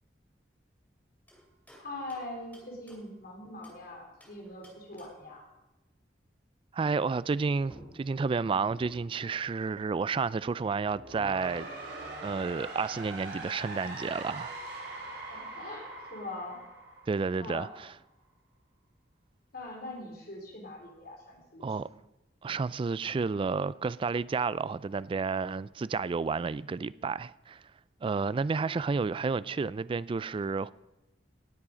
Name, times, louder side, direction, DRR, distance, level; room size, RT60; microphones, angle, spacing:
sound 1, 1.3-3.9 4.2-5.4 7.3-7.4 7.7-9.3, equal, 10° left, 2.7 m, -56 dB
voice 1, 1.8-5.4 15.3-16.6 17.3-17.7 19.5-22.0 28.6-28.8, left 2 dB, 55° left, 3.6 m, -42 dB
voice 2, 6.7-11.7 12.2-14.5 17.1-17.9 21.6-21.9 22.4-27.6 28.0-30.7, right 4 dB, 30° right, 0.3 m, -31 dB
sound 2, 10.8-17.7, right 2 dB, 65° right, 3.0 m, -42 dB
18.0 x 7.5 x 5.1 m
head